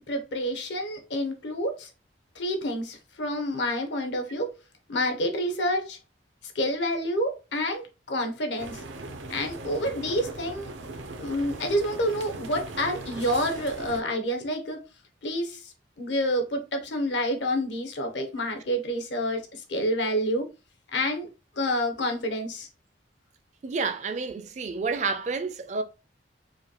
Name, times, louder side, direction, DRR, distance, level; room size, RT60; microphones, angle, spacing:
voice 1, 0.1-1.9 2.4-4.5 4.9-6.0 6.5-8.8 9.3-10.7 11.2-14.8 15.2-15.7 16.0-19.4 19.7-20.5 20.9-21.3 21.6-22.7, equal, 75° left, 0.9 m, -28 dB
sound 1, 8.6-14.0, right 2 dB, 85° right, 0.7 m, -39 dB
voice 2, 23.6-25.8, right 4 dB, 40° right, 0.4 m, -29 dB
5.0 x 2.2 x 2.9 m
head